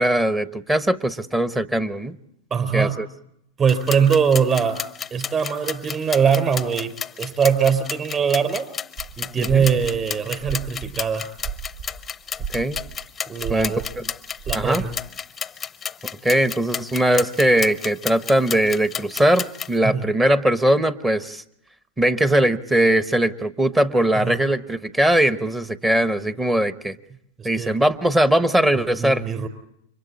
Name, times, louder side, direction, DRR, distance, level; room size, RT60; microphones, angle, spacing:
voice 1, 0.0-2.2 2.7-3.1 9.4-9.6 12.5-12.8 13.5-14.0 14.5-14.8 16.2-21.4 22.0-27.0 27.4-29.2, right 1 dB, 10° right, 12 dB, 1.1 m, -20 dB
voice 2, 2.5-3.0 3.6-4.8 5.1-8.7 9.2-11.3 13.3-13.8 14.5-14.9 19.8-20.0 24.2-24.4 27.4-27.7 28.8-29.5, right 7 dB, 25° right, 10 dB, 4.3 m, -22 dB
sound 1, 3.7-19.8, left 7 dB, 20° left, 0.7 m, -32 dB
sound 2, 9.0-9.1 9.4-11.9 12.2-12.9 13.4-14.9, right 7 dB, 65° right, 4.6 m, -33 dB
30.0 x 25.0 x 4.1 m, 0.76 s
hypercardioid pair, 115°, 0 cm